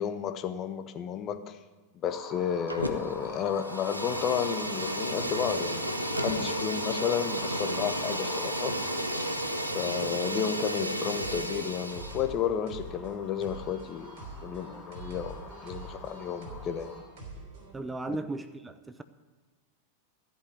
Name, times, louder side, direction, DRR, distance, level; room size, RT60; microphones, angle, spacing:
voice 1, 0.0-1.6 1.9-8.7 9.7-14.1 14.4-17.0 18.1-18.2, left 8 dB, 30° left, 0.8 m, -32 dB
sound 1, 2.0-17.0, left 2 dB, 5° left, 4.2 m, -44 dB
Fire, 2.7-3.2 3.5-12.2, right 1 dB, 85° right, 0.8 m, -33 dB
sound 2, 11.1-17.7, right 2 dB, 50° right, 3.2 m, -45 dB
voice 2, 17.7-19.0, right 2 dB, 10° right, 0.5 m, -36 dB
13.5 x 5.5 x 9.0 m
figure-of-eight pair, 90°, 0 cm